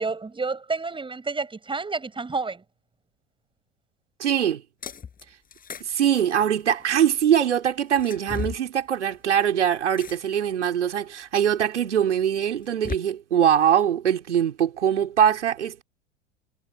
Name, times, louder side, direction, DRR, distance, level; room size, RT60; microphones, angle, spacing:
voice 1, 0.0-2.6, right 4 dB, 15° right, 7.4 m, -29 dB
voice 2, 4.2-4.6 5.8-15.8, right 9 dB, 85° right, 4.4 m, -22 dB
sound 1, 4.8-5.2 5.5-7.1 7.9-8.6 10.0-10.5 11.2-11.3 12.4-13.0, left 7 dB, 25° left, 6.0 m, -35 dB
hypercardioid pair, 90°, 34 cm